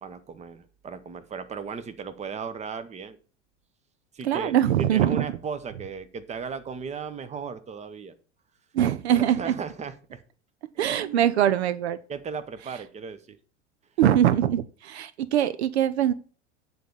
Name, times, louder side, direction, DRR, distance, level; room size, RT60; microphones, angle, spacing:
voice 1, 0.0-3.2 4.1-8.1 9.1-10.2 10.7-11.2 12.1-13.4, right 5 dB, 20° right, 0.9 m, -36 dB
voice 2, 4.2-5.3 8.7-9.5 10.8-12.0 14.0-16.1, right 11 dB, 65° right, 0.6 m, -22 dB
9.3 x 4.1 x 6.7 m
figure-of-eight pair, 85°, 35 cm